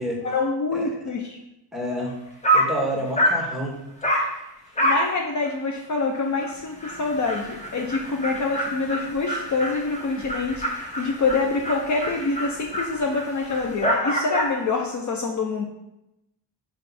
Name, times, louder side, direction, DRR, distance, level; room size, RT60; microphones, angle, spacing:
voice 1, 0.2-1.4 4.8-15.7, left 3 dB, 45° left, 2 dB, 0.7 m, -26 dB
voice 2, 1.7-2.1 2.5-3.8, equal, ahead, -1 dB, 1.6 m, -28 dB
Dog, 2.1-2.2 2.4-2.8 3.2-3.5 4.0-4.3 4.8-5.1 5.4-5.5 5.9-6.0 6.4-6.5 6.8-14.6, equal, 15° left, 1.2 m, -26 dB
5.5 x 4.8 x 4.2 m, 0.88 s
cardioid pair, 115°, 42 cm